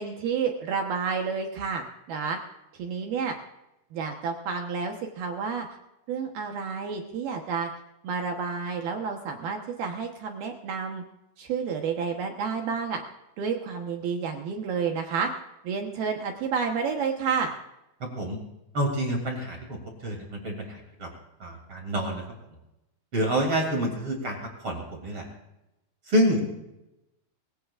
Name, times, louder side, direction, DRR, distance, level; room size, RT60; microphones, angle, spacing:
voice 1, 0.0-2.4 2.7-3.4 3.9-5.7 6.1-7.7 8.0-11.0 11.4-13.0 13.4-15.3 15.6-17.5, right 6 dB, 70° right, 3 dB, 2.4 m, -30 dB
voice 2, 18.0-18.4 18.7-21.1 21.4-22.2 23.1-24.4 24.6-25.2 26.1-26.4, equal, 30° right, 1 dB, 3.0 m, -27 dB
23.5 x 17.0 x 2.5 m, 0.93 s
omnidirectional pair, 5.8 m